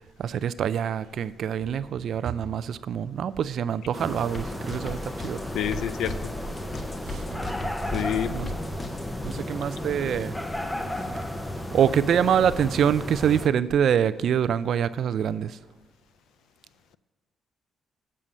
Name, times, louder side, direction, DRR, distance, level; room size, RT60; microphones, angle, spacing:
voice 1, 0.2-5.4 7.1-7.4 8.3-8.5 9.2-10.3 11.7-15.6, right 8 dB, 65° right, 0.3 m, -25 dB
sound 1, 3.9-13.5, left 1 dB, 10° left, 0.7 m, -33 dB
sound 2, 4.3-9.4, left 1 dB, 30° left, 0.9 m, -37 dB
voice 2, 5.5-6.3 7.9-8.3, left 10 dB, 80° left, 0.4 m, -28 dB
7.4 x 5.5 x 6.4 m
cardioid pair, 90°, 0 cm